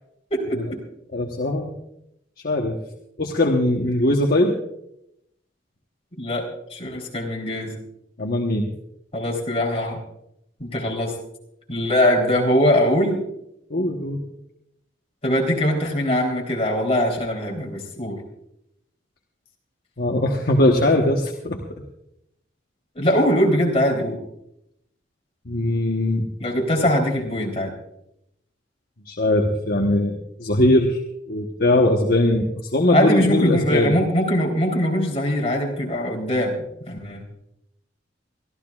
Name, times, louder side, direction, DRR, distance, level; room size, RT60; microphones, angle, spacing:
voice 1, 0.3-0.8 6.2-7.7 9.1-10.0 10.6-11.1 11.7-13.2 15.2-18.2 23.0-24.2 26.4-27.7 32.9-36.5 36.9-37.2, equal, 35° left, -1 dB, 3.6 m, -22 dB
voice 2, 1.1-1.7 2.4-2.8 3.2-4.6 8.2-8.7 13.7-14.2 20.0-21.6 25.5-26.3 29.1-31.0 31.3-33.9, left 1 dB, 55° left, 0 dB, 1.2 m, -20 dB
24.0 x 14.0 x 2.4 m, 0.80 s
head